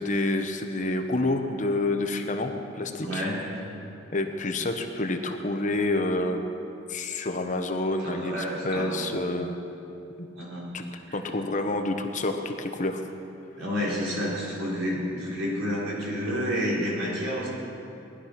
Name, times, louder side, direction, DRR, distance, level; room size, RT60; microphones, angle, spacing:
voice 1, 0.0-3.3 4.1-6.5 6.9-9.6 10.2-10.3 10.7-10.8 11.1-13.0, left 2 dB, 40° left, 5 dB, 1.0 m, -28 dB
voice 2, 3.0-3.4 8.0-9.1 10.4-10.7 11.1-11.2 13.6-17.5, equal, 80° right, -5 dB, 4.5 m, -30 dB
19.0 x 11.5 x 5.9 m, 2.8 s
head